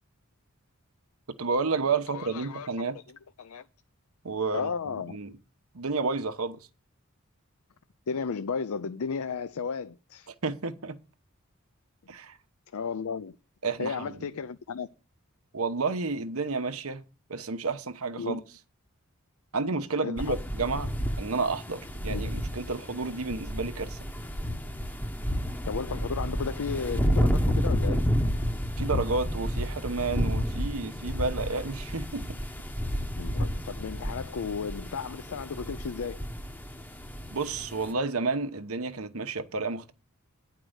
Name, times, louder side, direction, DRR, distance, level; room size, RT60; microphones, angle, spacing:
voice 1, 1.4-3.0 4.2-5.3 5.7-6.6 10.3-11.0 12.1-12.4 13.6-14.2 15.5-17.0 17.3-18.4 19.5-24.0 28.8-32.3 37.3-39.9, right 4 dB, 75° right, 1.0 m, -31 dB
voice 2, 2.1-2.9 3.4-3.6 4.5-5.2 8.1-10.3 12.7-13.4 13.8-14.9 18.2-18.4 20.0-20.4 22.1-22.2 25.7-28.1 33.2-36.2, left 5 dB, 75° left, 0.5 m, -34 dB
sound 1, 20.2-37.9, equal, 10° left, 0.9 m, -31 dB
10.0 x 4.7 x 7.9 m
head